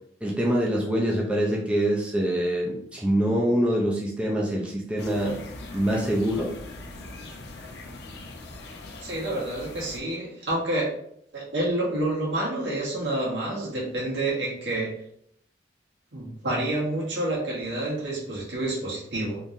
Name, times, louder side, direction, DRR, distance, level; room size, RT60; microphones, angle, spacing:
voice 1, 0.2-5.4 5.7-6.5, right 1 dB, 5° right, -3 dB, 0.5 m, -25 dB
sound 1, 5.0-10.0, left 2 dB, 65° left, 0.5 m, -41 dB
voice 2, 9.0-10.9 11.3-14.9 16.1-19.4, right 1 dB, 85° right, -5 dB, 1.5 m, -28 dB
3.6 x 2.9 x 2.6 m, 0.69 s
head